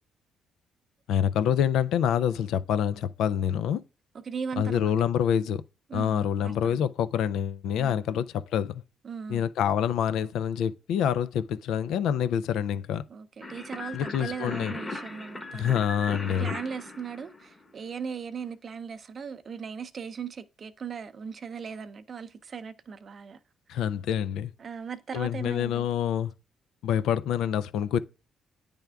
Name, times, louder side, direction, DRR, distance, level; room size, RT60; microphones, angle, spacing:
voice 1, 1.1-3.8 4.6-5.6 5.9-8.8 9.3-13.0 13.9-14.7 15.5-16.5 23.7-24.5 25.1-26.3 26.8-28.0, left 9 dB, 85° left, 0.3 m, -26 dB
voice 2, 4.1-4.9 5.9-6.9 7.8-8.0 9.0-9.5 13.1-15.7 16.2-23.4 23.7-23.8 24.6-25.9, right 6 dB, 45° right, 0.5 m, -38 dB
sound 1, 13.4-17.9, left 2 dB, 20° left, 1.0 m, -38 dB
9.0 x 3.5 x 3.4 m
cardioid pair, 90°, 0 cm